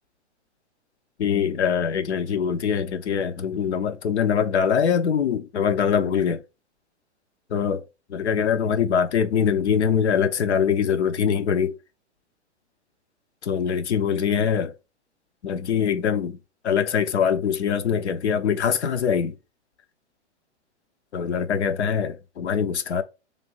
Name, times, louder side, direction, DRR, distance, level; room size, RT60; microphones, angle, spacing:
voice 1, 1.2-6.4 7.5-7.8 8.1-11.7 13.4-14.7 15.4-16.4 16.6-19.3 21.1-23.0, left 7 dB, 70° left, 0.7 m, -23 dB
3.2 x 2.8 x 3.8 m
figure-of-eight pair, 115°, 35 cm